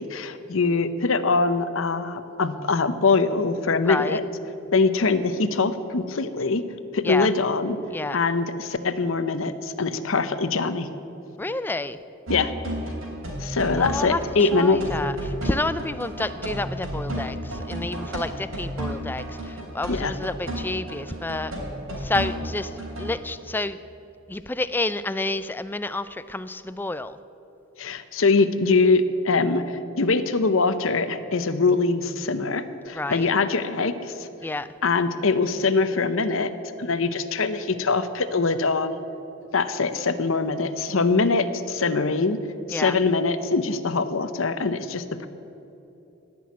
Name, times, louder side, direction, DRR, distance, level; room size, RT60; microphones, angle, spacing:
voice 1, 0.0-4.2 4.7-6.6 6.9-7.8 8.1-10.9 12.3-12.5 13.4-14.8 19.9-20.2 27.8-34.3 34.8-36.5 36.8-39.0 39.5-42.4 42.7-45.3, left 4 dB, 65° left, 11 dB, 0.8 m, -23 dB
voice 2, 3.9-4.2 7.0-7.3 7.9-8.2 11.4-12.0 13.8-14.2 14.5-15.1 15.4-17.4 17.7-19.2 19.7-21.5 22.0-22.7 23.0-23.8 24.3-27.2 33.0-33.2 34.4-34.7 42.7-42.9, left 2 dB, 10° left, 13 dB, 0.3 m, -29 dB
sound 1, 12.3-23.2, right 1 dB, 65° right, 3.5 m, -32 dB
17.5 x 6.3 x 9.4 m, 3.0 s
head